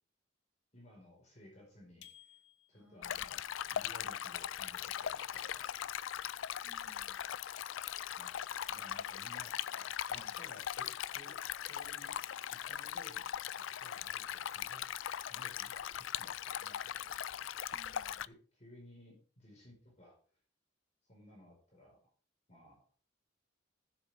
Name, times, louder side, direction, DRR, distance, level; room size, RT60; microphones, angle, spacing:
voice 1, 0.7-2.4 2.7-3.4 3.7-5.7 8.2-8.4 8.7-9.7 10.1-12.2 12.5-14.9 15.3-17.4 18.3-20.2 21.1-22.0 22.5-22.8, left 1 dB, 35° left, -2 dB, 5.0 m, -58 dB
sound 1, 2.0-3.1, left 11 dB, 65° left, 0.9 m, -59 dB
voice 2, 2.8-3.4 6.6-7.2 9.8-10.4 17.7-18.4, equal, 10° right, -5 dB, 5.2 m, -64 dB
Stream, 3.0-18.3, left 10 dB, 90° left, 0.4 m, -40 dB
15.0 x 7.3 x 3.6 m, 0.39 s
head